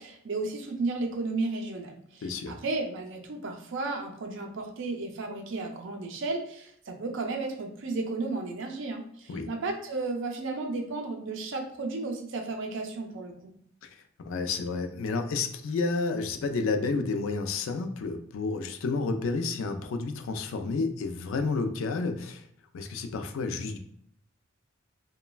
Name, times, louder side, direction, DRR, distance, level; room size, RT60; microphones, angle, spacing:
voice 1, 0.0-13.5, right 3 dB, 60° right, 3 dB, 0.5 m, -33 dB
voice 2, 2.2-2.6 9.3-9.5 13.8-13.9 14.2-22.4 22.7-23.8, left 4 dB, 65° left, 7 dB, 0.3 m, -30 dB
3.0 x 2.1 x 2.2 m, 0.70 s
head